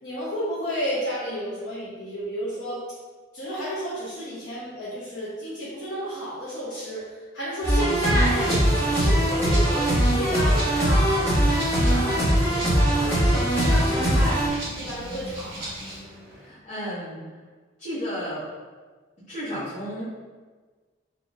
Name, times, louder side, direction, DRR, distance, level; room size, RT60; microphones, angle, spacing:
voice 1, 0.0-2.8 3.3-14.4 14.7-15.7, equal, 70° left, -9 dB, 0.9 m, -32 dB
sound 1, 7.6-14.5, equal, 15° left, 1.1 m, -21 dB
Rattle (instrument), 7.9-16.0, right 1 dB, 55° right, 1.3 m, -39 dB
sound 2, 11.7-16.6, equal, 20° right, 0.6 m, -40 dB
voice 2, 16.4-17.2 17.8-18.5 19.3-20.0, equal, 40° left, -15 dB, 1.5 m, -32 dB
4.0 x 2.8 x 2.5 m, 1.4 s
head